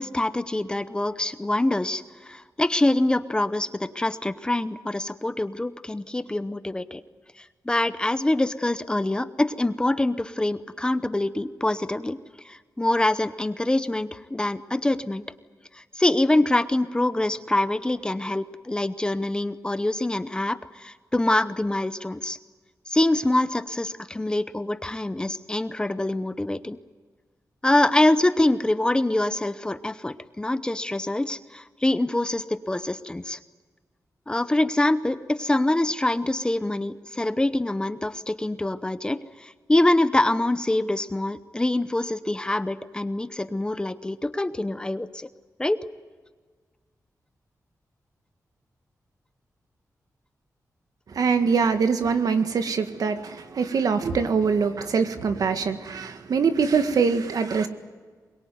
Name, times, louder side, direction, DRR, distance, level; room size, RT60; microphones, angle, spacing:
voice 1, 0.0-7.0 7.4-12.2 12.4-15.2 15.7-22.4 22.9-26.8 27.6-33.4 34.3-45.3 45.6-45.8, left 1 dB, 15° left, 12 dB, 0.8 m, -25 dB
voice 2, 51.1-57.7, right 5 dB, 75° right, 8 dB, 1.8 m, -23 dB
22.5 x 22.0 x 9.5 m, 1.5 s
wide cardioid pair, 150°, 6 cm